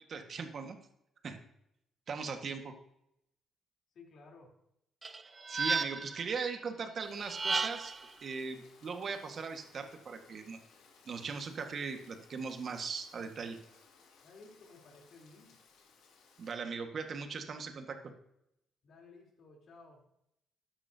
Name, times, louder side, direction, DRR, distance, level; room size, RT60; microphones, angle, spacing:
voice 1, 0.1-0.8 1.2-1.4 2.1-2.7 5.5-7.9 8.2-10.6 11.0-13.6 16.4-18.0, right 5 dB, 50° right, 6 dB, 1.7 m, -39 dB
voice 2, 3.9-4.6 14.2-15.6 18.8-20.1, left 3 dB, 65° left, 0 dB, 3.7 m, -56 dB
sound 1, 5.0-6.2 7.2-8.1, right 4 dB, 30° right, 0.5 m, -33 dB
Rain, 7.0-16.5, left 5 dB, 85° left, 2.4 m, -63 dB
13.5 x 9.9 x 2.8 m, 0.80 s
cardioid pair, 90°, 0 cm